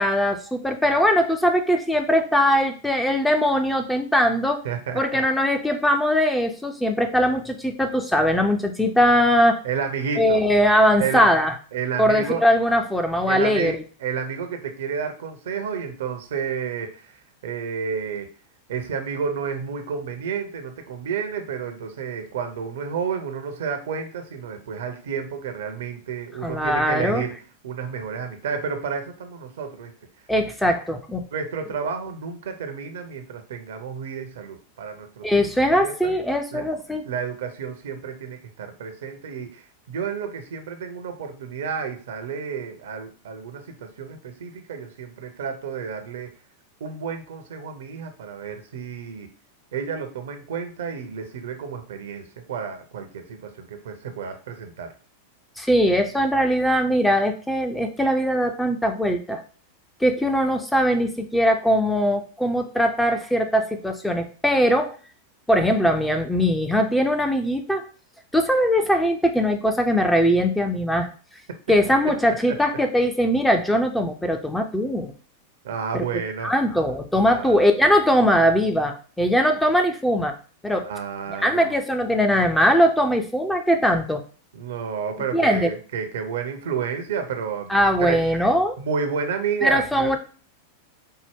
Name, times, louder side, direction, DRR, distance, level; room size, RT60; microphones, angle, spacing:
voice 1, 0.0-4.6 4.9-9.6 10.2-11.5 12.0-13.7 26.4-27.2 30.3-31.2 35.2-37.0 55.6-59.4 60.0-64.9 65.5-67.8 68.3-71.1 71.7-75.1 75.9-76.0 76.4-80.3 80.6-80.9 81.4-84.2 85.3-85.7 87.7-88.8 89.6-90.2, equal, 5° left, 4 dB, 0.5 m, -20 dB
voice 2, 4.6-5.2 9.6-10.4 11.0-11.3 11.7-12.4 13.3-17.1 17.4-18.3 18.7-27.3 27.6-29.9 31.3-35.4 35.8-36.1 36.5-36.6 37.0-46.3 46.8-49.3 49.7-54.9 71.0-71.1 72.5-72.6 75.6-76.9 77.3-77.7 80.8-81.7 84.5-88.5 88.8-90.2, right 6 dB, 60° right, 6 dB, 0.6 m, -31 dB
4.4 x 2.1 x 3.5 m, 0.39 s
figure-of-eight pair, 90°, 0 cm